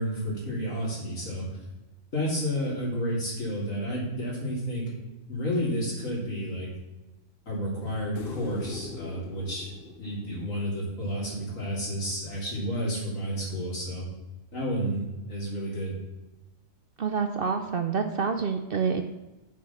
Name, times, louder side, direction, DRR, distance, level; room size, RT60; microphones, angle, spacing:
voice 1, 0.0-1.4 2.1-4.9 5.3-6.7 7.5-9.7 10.0-14.1 14.5-15.9, equal, 70° left, -5 dB, 3.8 m, -31 dB
sound 1, 8.2-11.4 14.0-14.1, left 4 dB, 45° left, 1.0 m, -41 dB
voice 2, 17.0-19.0, right 5 dB, 55° right, 7 dB, 0.7 m, -27 dB
7.5 x 6.1 x 7.1 m, 1.1 s
omnidirectional pair, 1.4 m